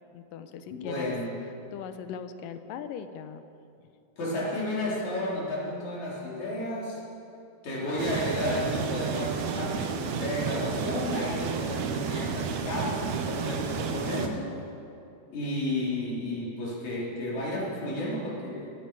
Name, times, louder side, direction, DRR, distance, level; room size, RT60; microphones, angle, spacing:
voice 1, 0.1-1.1 1.7-3.4, left 8 dB, 85° left, 10 dB, 2.4 m, -39 dB
voice 2, 0.8-1.3 4.2-7.0 7.6-14.5 15.3-18.7, left 1 dB, 60° left, -5 dB, 4.7 m, -32 dB
sound 1, 8.0-14.3, right 6 dB, 70° right, 1.8 m, -32 dB
18.0 x 15.0 x 4.7 m, 2.6 s
omnidirectional pair, 3.8 m